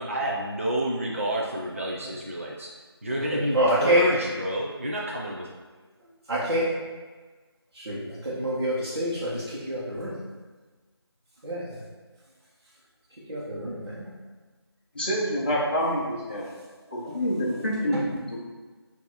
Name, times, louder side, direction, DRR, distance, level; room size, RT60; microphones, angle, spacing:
voice 1, 0.0-2.7 3.0-5.5, right 1 dB, 30° right, -4 dB, 0.4 m, -29 dB
voice 2, 3.3-4.0 6.3-6.7 7.7-10.1 11.4-11.8 13.3-14.1 17.0-17.2 17.9-18.0, right 1 dB, 50° right, -11 dB, 1.2 m, -26 dB
voice 3, 14.9-16.4 16.9-18.4, equal, 20° left, -7 dB, 0.7 m, -27 dB
4.4 x 2.8 x 4.1 m, 1.4 s
figure-of-eight pair, 170°, 14 cm